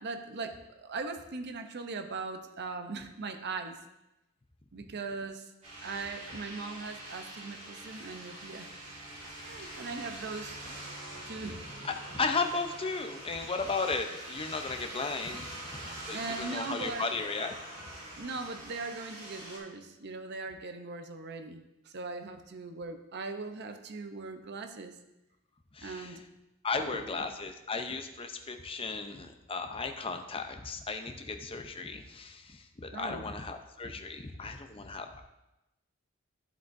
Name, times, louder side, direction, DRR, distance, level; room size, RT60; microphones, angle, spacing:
voice 1, 0.0-3.8 4.7-5.5 5.8-8.7 9.4-10.7 11.2-11.6 16.1-17.1 18.1-25.0 25.8-26.2 26.7-27.3 32.9-33.3, right 3 dB, 50° right, 7 dB, 0.6 m, -40 dB
sound 1, 5.6-19.6, right 1 dB, 30° right, 2.3 m, -44 dB
voice 2, 11.8-15.8 16.1-17.5 25.7-26.2 26.6-35.2, left 4 dB, 25° left, 6 dB, 0.6 m, -35 dB
11.0 x 7.9 x 2.6 m, 0.95 s
head